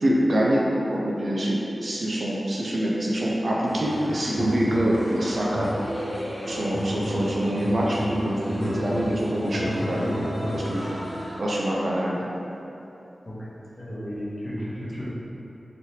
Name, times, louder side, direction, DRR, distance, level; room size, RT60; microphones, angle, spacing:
voice 1, 0.0-0.7 0.9-5.8 6.5-10.9 11.4-12.2, right 1 dB, 60° right, -4 dB, 0.5 m, -25 dB
sound 1, 3.7-11.4, equal, 5° right, 1.0 m, -32 dB
voice 2, 13.8-15.1, equal, 40° left, -9 dB, 1.1 m, -33 dB
3.2 x 2.8 x 2.8 m, 3.0 s
cardioid pair, 50°, 0 cm